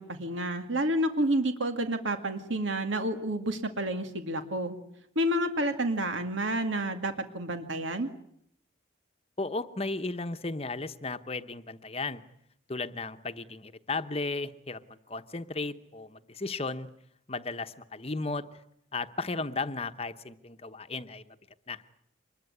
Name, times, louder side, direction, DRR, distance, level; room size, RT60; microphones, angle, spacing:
voice 1, 0.0-4.7 5.2-8.1, right 1 dB, 85° right, 7 dB, 2.2 m, -29 dB
voice 2, 9.4-12.2 12.7-14.8 15.1-16.9 17.3-18.4 18.9-21.3 21.7-21.8, left 3 dB, 30° left, 10 dB, 1.0 m, -35 dB
25.0 x 21.5 x 9.7 m, 0.73 s
head